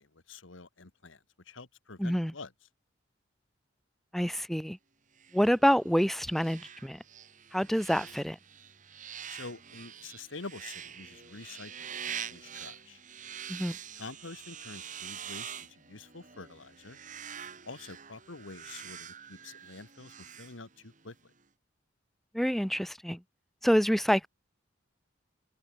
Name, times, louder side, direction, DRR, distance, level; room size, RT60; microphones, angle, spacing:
voice 1, 0.0-2.5 9.3-13.0 14.0-17.0 17.6-21.2, left 3 dB, 90° left, 1.8 m, -47 dB
voice 2, 2.0-2.3 4.1-4.8 5.3-7.0 7.5-8.4 13.5-13.8 22.3-23.2 23.6-24.3, equal, ahead, 0.8 m, -27 dB
sound 1, 5.2-21.1, right 8 dB, 40° right, 2.2 m, -45 dB
head